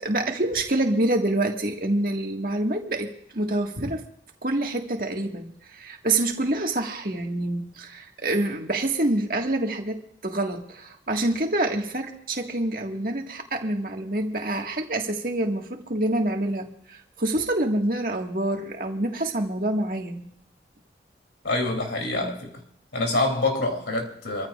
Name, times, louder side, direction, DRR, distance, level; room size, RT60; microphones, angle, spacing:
voice 1, 0.0-4.1 4.4-20.2, right 1 dB, 50° right, 1.8 m, -27 dB
voice 2, 21.4-22.6 22.9-24.5, left 2 dB, 85° left, 3.1 m, -26 dB
26.0 x 15.0 x 2.5 m
head